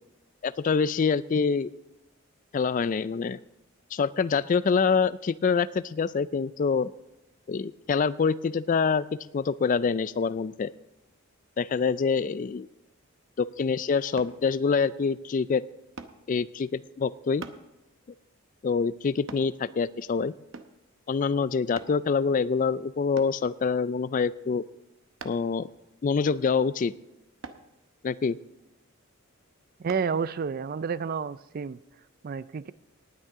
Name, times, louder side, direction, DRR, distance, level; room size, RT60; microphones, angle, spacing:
voice 1, 0.4-1.7 2.5-3.4 3.9-6.9 7.5-9.1 9.3-10.7 11.6-12.7 13.4-15.6 16.3-17.4 18.6-20.3 21.1-24.6 25.2-25.7 26.0-26.9 28.0-28.4, left 5 dB, 35° left, 17 dB, 0.3 m, -26 dB
sound 1, 14.2-14.4 16.0-16.2 17.4-17.7 19.3-19.5 20.5-20.8 21.8-22.0 23.2-23.4 25.2-25.5 27.4-27.7 29.9-30.1 30.7-30.8, right 4 dB, 60° right, 0.8 m, -42 dB
voice 2, 29.8-31.8 32.2-32.7, right 6 dB, 40° right, 17 dB, 0.3 m, -30 dB
18.5 x 9.3 x 3.7 m, 0.97 s
head